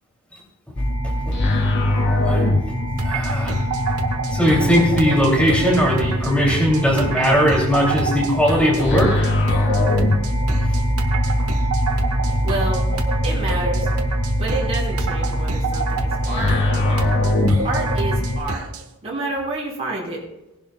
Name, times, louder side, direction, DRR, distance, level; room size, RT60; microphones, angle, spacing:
sound 1, 0.8-18.4, left 1 dB, 55° left, 1.7 m, -22 dB
voice 1, 1.0-1.3 2.2-2.5 3.0-3.5 4.3-9.3, equal, 5° left, -3 dB, 2.8 m, -19 dB
sound 2, 3.0-18.9, right 3 dB, 80° right, 1.2 m, -29 dB
voice 2, 12.4-12.9 13.2-13.9 14.4-17.0 17.6-18.6 19.0-20.2, right 2 dB, 30° right, -5 dB, 4.5 m, -28 dB
19.0 x 11.0 x 2.3 m, 0.93 s
head